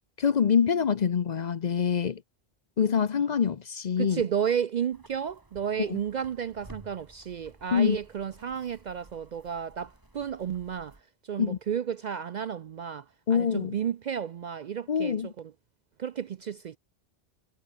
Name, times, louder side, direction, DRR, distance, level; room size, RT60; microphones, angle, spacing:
voice 1, 0.2-2.2 2.8-4.2 5.9-6.0 7.7-8.0 11.4-11.6 13.3-13.7 14.9-15.3, left 7 dB, 50° left, 0.7 m, -25 dB
voice 2, 4.0-15.5 16.0-16.8, right 8 dB, 55° right, 0.5 m, -32 dB
sound 1, 4.9-11.0, right 1 dB, 20° right, 2.3 m, -54 dB
omnidirectional pair, 1.1 m